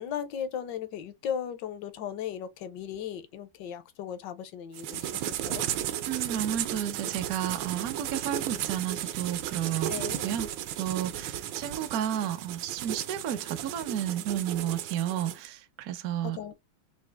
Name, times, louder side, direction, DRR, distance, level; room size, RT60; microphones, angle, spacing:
voice 1, 0.0-5.7 9.9-10.3 16.2-16.5, left 8 dB, 70° left, 1.2 m, -37 dB
sound 1, 4.7-15.5, right 11 dB, 85° right, 1.4 m, -34 dB
voice 2, 6.1-10.0 10.2-10.5 10.8-16.4, right 10 dB, 65° right, 0.9 m, -32 dB
4.2 x 2.7 x 3.4 m
omnidirectional pair, 2.2 m